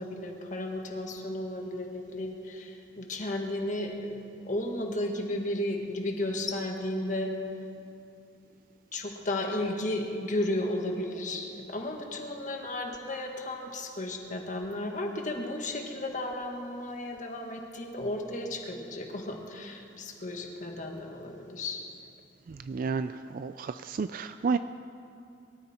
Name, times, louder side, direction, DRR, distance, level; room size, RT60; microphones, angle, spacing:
voice 1, 0.0-7.3 8.9-21.8, left 1 dB, 45° left, 2 dB, 1.8 m, -34 dB
voice 2, 22.7-24.6, right 5 dB, 50° right, 11 dB, 0.3 m, -31 dB
23.5 x 13.5 x 4.4 m, 2.6 s
head